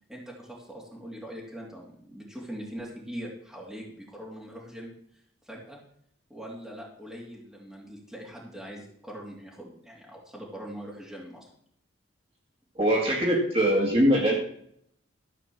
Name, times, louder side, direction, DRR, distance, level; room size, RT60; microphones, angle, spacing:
voice 1, 0.1-4.9 5.4-5.8 6.3-11.4, equal, ahead, -4 dB, 2.8 m, -42 dB
voice 2, 12.8-14.3, equal, 30° right, -3 dB, 2.1 m, -22 dB
13.5 x 5.0 x 7.2 m, 0.68 s
head